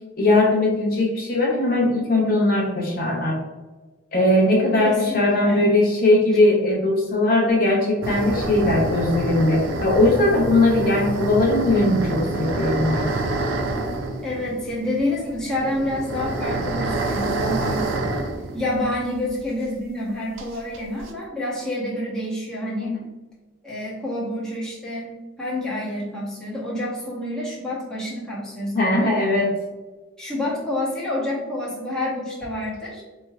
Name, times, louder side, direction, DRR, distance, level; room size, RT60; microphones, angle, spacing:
voice 1, 0.2-3.4 4.1-13.1 22.8-23.0 28.7-29.5, left 2 dB, 45° left, -2 dB, 0.7 m, -19 dB
voice 2, 4.8-5.7 14.2-17.8 18.5-23.0 23.6-29.1 30.2-33.0, left 1 dB, 5° left, -7 dB, 0.9 m, -28 dB
sound 1, 8.0-19.5 19.7-19.8 20.4-21.1, right 2 dB, 80° right, 0.5 m, -27 dB
4.3 x 3.1 x 2.3 m, 1.2 s
head